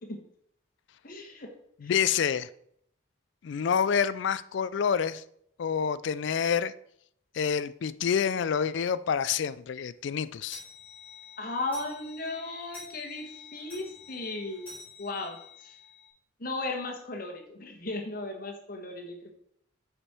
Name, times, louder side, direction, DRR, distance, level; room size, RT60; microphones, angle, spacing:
voice 1, 1.0-1.5 1.8-1.9 11.4-14.7 15.0-15.4 15.6-15.7 16.4-19.3, left 2 dB, 45° left, 2 dB, 1.5 m, -36 dB
voice 2, 1.8-2.5 3.4-5.2 5.6-6.7 7.3-10.6, left 7 dB, 65° left, 16 dB, 0.3 m, -27 dB
sound 1, 8.2-8.3 8.8-8.9 9.2-9.3 9.7-16.1, left 4 dB, 5° left, 3.3 m, -49 dB
8.6 x 5.1 x 4.4 m, 0.70 s
head